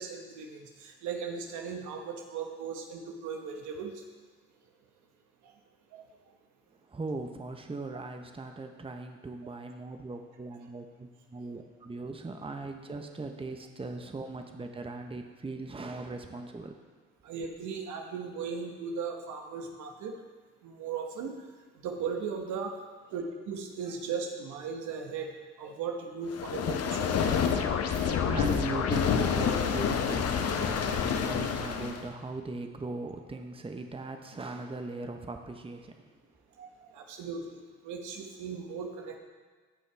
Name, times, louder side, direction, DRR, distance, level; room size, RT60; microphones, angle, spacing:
voice 1, 0.0-3.9 5.9-6.0 11.5-11.6 17.2-20.1 20.6-21.3 21.8-22.7 23.1-25.3 25.6-27.6 36.6-36.7 36.9-37.4 37.8-39.2, right 5 dB, 70° right, 2 dB, 1.4 m, -37 dB
voice 2, 6.9-16.8 28.2-36.2, right 3 dB, 20° right, 5 dB, 1.0 m, -39 dB
sound 1, 26.3-32.1, left 7 dB, 55° left, 0.9 m, -28 dB
17.0 x 5.6 x 3.4 m, 1.4 s
hypercardioid pair, 55°, 31 cm